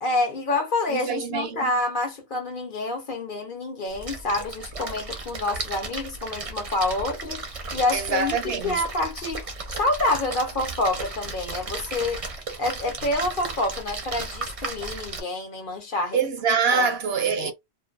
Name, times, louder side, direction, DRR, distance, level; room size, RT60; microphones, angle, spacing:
voice 1, 0.0-7.4 7.7-9.4 9.7-12.2 12.6-16.2 16.7-16.9 17.4-17.5, left 2 dB, 55° left, 0.8 m, -27 dB
voice 2, 0.9-1.7 7.9-8.8 16.1-17.5, right 5 dB, 70° right, 0.8 m, -25 dB
Splash splatter, 3.9-15.2, right 3 dB, 40° right, 0.6 m, -35 dB
2.5 x 2.3 x 2.3 m
omnidirectional pair, 1.1 m